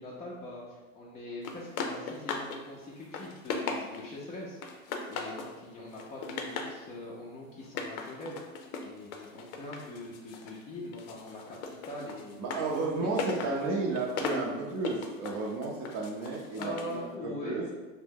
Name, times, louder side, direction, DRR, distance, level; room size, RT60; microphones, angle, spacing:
voice 1, 0.0-8.4 8.8-12.6 13.0-13.7 16.6-17.6, left 1 dB, 20° left, -6 dB, 0.3 m, -42 dB
sound 1, 1.4-2.6 2.9-4.2 4.6-5.5 5.9-6.8 7.6-10.6 10.9-17.0, left 4 dB, 85° left, 0.5 m, -38 dB
voice 2, 12.4-17.7, right 3 dB, 40° right, -2 dB, 0.5 m, -33 dB
2.6 x 2.0 x 3.6 m, 1.2 s
hypercardioid pair, 105°, 41 cm